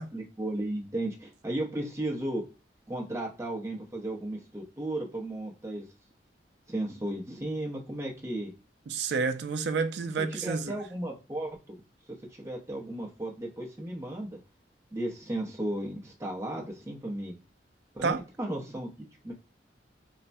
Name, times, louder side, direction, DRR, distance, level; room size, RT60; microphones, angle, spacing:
voice 1, 0.0-2.5 2.9-5.9 6.7-8.5 10.0-11.8 12.3-14.4 14.9-17.4 17.9-19.3, right 1 dB, 15° right, 0.6 m, -35 dB
voice 2, 8.9-10.7 18.0-18.2, right 4 dB, 70° right, 0.4 m, -29 dB
3.2 x 2.1 x 2.5 m
head